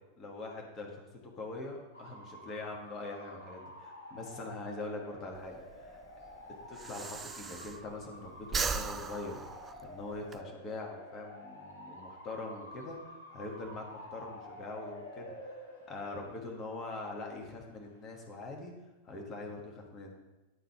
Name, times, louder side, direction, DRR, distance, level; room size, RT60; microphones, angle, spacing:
voice 1, 0.2-0.9 1.2-6.0 6.7-15.3 15.9-18.7 19.0-20.1, left 2 dB, 25° left, 0 dB, 1.4 m, -43 dB
Bark / Motor vehicle (road) / Siren, 1.9-18.2, left 1 dB, 70° left, 1.5 m, -50 dB
Breathing, 5.3-8.1 8.4-10.4, right 5 dB, 15° right, 0.4 m, -37 dB
10.0 x 4.0 x 4.5 m, 1.1 s
figure-of-eight pair, 90°, 0 cm